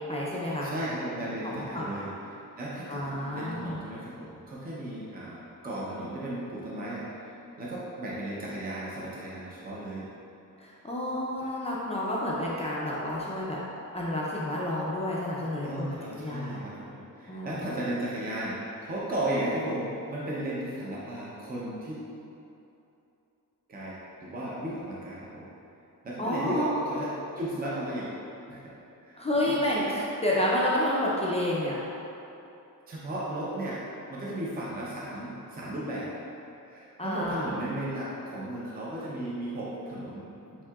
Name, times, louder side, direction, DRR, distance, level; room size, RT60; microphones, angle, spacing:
voice 1, 0.1-0.7 1.4-1.9 2.9-3.8 10.6-13.6 13.9-15.9 16.2-16.6 17.3-17.6 26.2-26.8 29.2-31.8 37.0-37.5, left 1 dB, 20° left, -6 dB, 0.5 m, -29 dB
voice 2, 0.6-2.1 2.6-10.1 15.6-22.0 23.7-25.5 26.0-28.1 28.5-28.7 29.0-29.2 29.4-29.6 32.9-33.8 34.1-36.1 36.7-40.7, right 1 dB, 25° right, -6 dB, 0.6 m, -35 dB
7.1 x 2.8 x 2.3 m, 2.8 s
wide cardioid pair, 140°, 35 cm